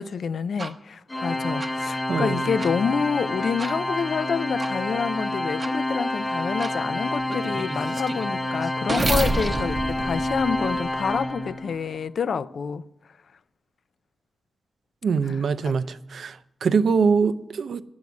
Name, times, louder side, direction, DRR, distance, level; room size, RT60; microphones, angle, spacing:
voice 1, 0.0-12.8 15.2-15.7, left 6 dB, 70° left, 0.3 m, -28 dB
sound 1, 0.6-0.7 1.6-1.7 2.6-2.7 3.6-3.7 4.6-4.7 5.6-5.7 6.6-6.7 7.3-11.2, right 2 dB, 30° right, 0.7 m, -29 dB
Organ, 1.1-11.9, left 1 dB, 20° left, 0.9 m, -28 dB
voice 2, 2.1-2.5 15.0-15.9 16.1-16.4 16.6-17.8, right 5 dB, 75° right, 0.5 m, -23 dB
9.5 x 7.2 x 9.2 m
wide cardioid pair, 155°, 0 cm